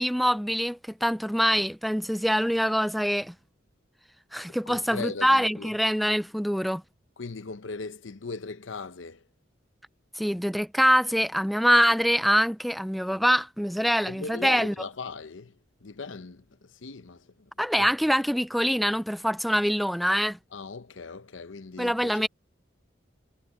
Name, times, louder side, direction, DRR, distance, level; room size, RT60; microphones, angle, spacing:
voice 1, 0.0-3.3 4.3-6.8 10.2-14.7 17.6-20.4 21.8-22.3, equal, ahead, 0.4 m, -24 dB
voice 2, 4.7-5.7 7.2-9.2 14.1-15.6 15.8-17.9 20.5-22.3, left 4 dB, 85° left, 0.8 m, -39 dB
head